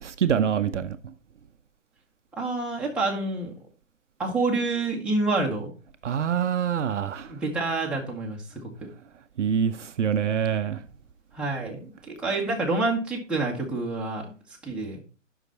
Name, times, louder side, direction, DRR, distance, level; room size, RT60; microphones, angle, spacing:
voice 1, 0.0-1.0 6.0-7.3 9.4-10.8, right 8 dB, 65° right, 0.7 m, -25 dB
voice 2, 2.4-3.5 4.2-5.7 7.3-8.7 11.3-14.3 14.6-15.0, right 3 dB, 5° right, 1.4 m, -28 dB
9.7 x 5.9 x 4.0 m
figure-of-eight pair, 135°, 39 cm